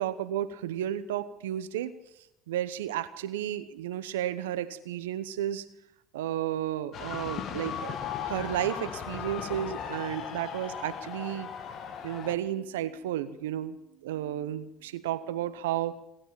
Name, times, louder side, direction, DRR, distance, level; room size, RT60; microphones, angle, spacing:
voice 1, 0.0-1.9 2.5-5.6 6.1-11.5 12.0-16.0, right 11 dB, 85° right, 14 dB, 0.8 m, -32 dB
sound 1, 6.9-12.4, left 8 dB, 55° left, 1.4 m, -37 dB
18.0 x 10.0 x 7.5 m, 0.87 s
hypercardioid pair, 70°, 0 cm